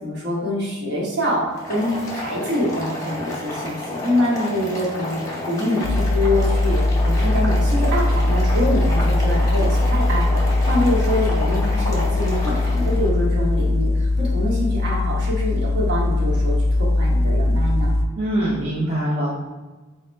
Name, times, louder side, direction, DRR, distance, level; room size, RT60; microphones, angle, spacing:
voice 1, 0.0-10.4 10.6-14.1 14.3-18.0, left 1 dB, 60° right, -4 dB, 1.1 m, -25 dB
Boiling, 1.5-13.1, left 1 dB, 15° left, 0.9 m, -31 dB
sound 1, 5.8-18.1, left 2 dB, 70° left, 0.4 m, -20 dB
voice 2, 18.2-19.4, right 1 dB, 30° right, -6 dB, 0.6 m, -23 dB
3.5 x 2.1 x 4.3 m, 1.2 s
head